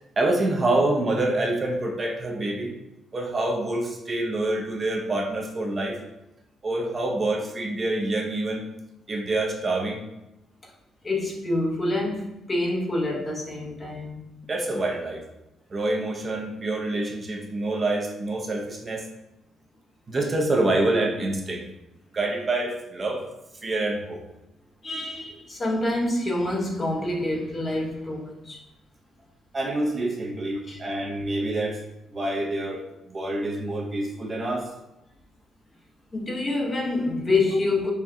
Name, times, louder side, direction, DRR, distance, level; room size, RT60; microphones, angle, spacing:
voice 1, 0.2-2.7 3.1-6.0 6.6-8.7 9.1-10.0 14.5-15.2 15.7-19.0 20.1-21.6 22.1-23.2 23.6-24.2 29.5-31.8 32.1-34.7, right 2 dB, 35° right, 0.6 m, -26 dB
voice 2, 11.0-14.2 24.8-28.6 30.7-30.8 36.1-37.9, left 2 dB, 30° left, 0.8 m, -27 dB
4.3 x 2.2 x 3.6 m
cardioid pair, 90°, 0 cm